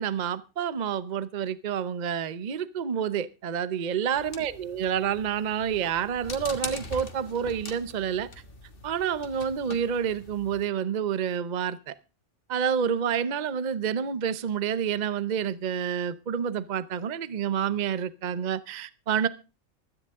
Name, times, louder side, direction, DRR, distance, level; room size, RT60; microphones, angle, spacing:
voice 1, 0.0-8.3 8.8-11.9 12.5-19.3, right 8 dB, 40° right, 0.7 m, -28 dB
sound 1, 4.1-10.6, left 2 dB, 40° left, 1.7 m, -42 dB
16.0 x 13.0 x 3.6 m
omnidirectional pair, 1.4 m